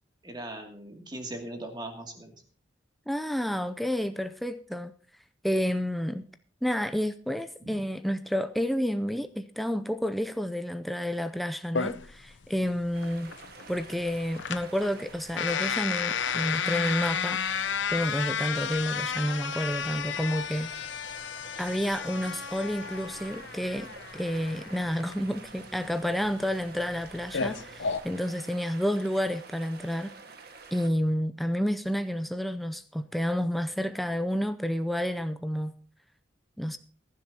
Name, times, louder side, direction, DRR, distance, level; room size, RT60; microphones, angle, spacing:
voice 1, 0.2-2.3 7.6-7.8, right 1 dB, 25° right, 2.4 m, -39 dB
voice 2, 3.1-4.9 5.4-6.3 6.6-13.3 13.7-17.4 17.9-20.7 21.6-23.9 24.1-30.1 30.7-35.7 36.6-36.8, equal, ahead, 0.4 m, -30 dB
sound 1, 11.7-28.0, left 7 dB, 70° left, 0.7 m, -33 dB
sound 2, 12.9-31.1, right 4 dB, 55° right, 1.6 m, -48 dB
21.5 x 10.5 x 2.8 m
head